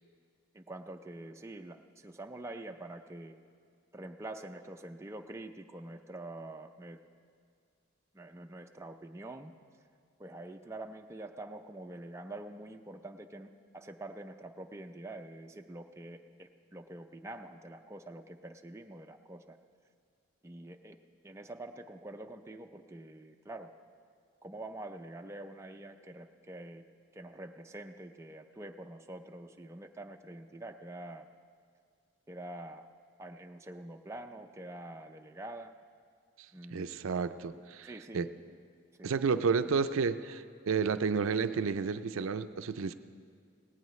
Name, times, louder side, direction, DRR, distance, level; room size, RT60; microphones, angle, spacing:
voice 1, 0.5-3.4 3.9-7.0 8.1-9.5 10.2-19.6 20.4-21.0 21.2-23.7 24.4-26.8 27.1-31.3 32.3-32.9 33.2-35.7 36.5-36.9 37.8-38.3 39.0-39.1, right 1 dB, 15° right, 4 dB, 0.4 m, -46 dB
voice 2, 36.7-38.3 39.0-42.9, right 5 dB, 75° right, 11 dB, 0.4 m, -31 dB
17.5 x 17.0 x 3.2 m, 2.2 s
head